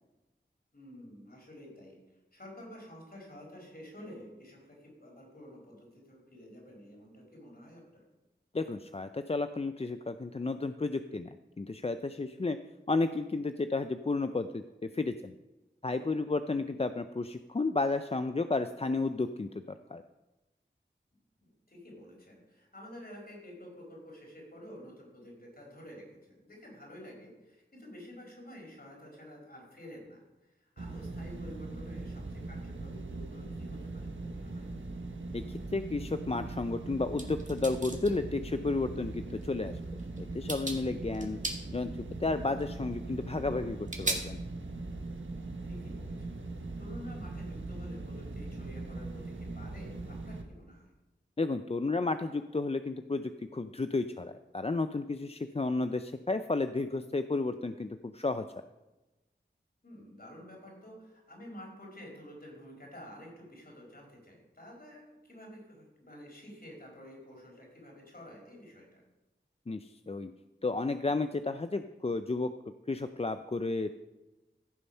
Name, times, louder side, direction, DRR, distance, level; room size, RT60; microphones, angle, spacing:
voice 1, 0.7-2.0 2.3-8.0 21.4-34.7 45.6-46.4 46.8-50.9 59.8-69.0, left 1 dB, 50° left, -1 dB, 4.7 m, -50 dB
voice 2, 8.5-12.6 12.9-15.3 15.8-20.0 35.3-39.8 40.2-41.4 41.7-44.4 51.4-58.5 69.7-70.3 70.6-72.5 72.9-74.1, left 3 dB, 30° left, 10 dB, 0.5 m, -32 dB
sound 1, 30.8-50.4, right 2 dB, 85° right, 1.2 m, -40 dB
sound 2, 37.2-38.1 39.4-39.5 40.0-40.2 40.5-40.8 41.1-41.6 42.6-42.7 43.9-44.1, right 1 dB, 40° right, 2.0 m, -35 dB
15.5 x 6.8 x 5.5 m, 1.1 s
wide cardioid pair, 40°, 19 cm